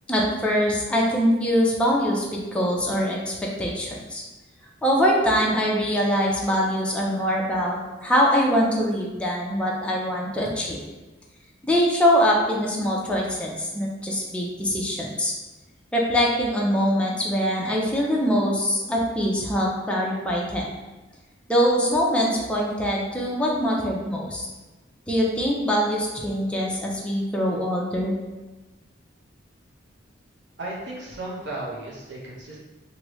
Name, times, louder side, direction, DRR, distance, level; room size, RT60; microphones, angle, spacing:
voice 1, 0.1-4.2 4.8-10.8 11.6-15.3 15.9-20.6 21.5-24.5 25.1-28.1, equal, 5° left, -3 dB, 0.5 m, -23 dB
voice 2, 30.6-32.6, right 2 dB, 65° right, -5 dB, 0.7 m, -34 dB
3.1 x 2.6 x 3.0 m, 1.1 s
head